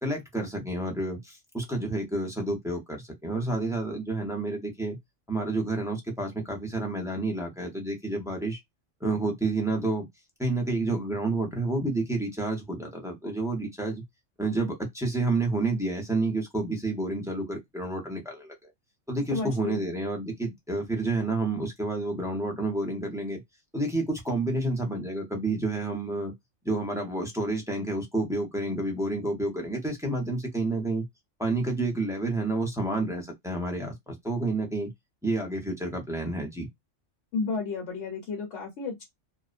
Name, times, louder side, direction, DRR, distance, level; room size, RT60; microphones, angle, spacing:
voice 1, 0.0-5.0 5.3-8.6 9.0-10.1 10.4-14.0 14.4-18.7 19.1-23.4 23.7-26.3 26.6-31.1 31.4-34.9 35.2-36.7, right 2 dB, 5° right, 0.4 m, -29 dB
voice 2, 19.3-19.9 37.3-39.0, left 4 dB, 65° left, 1.1 m, -32 dB
2.5 x 2.0 x 2.4 m
omnidirectional pair, 1.3 m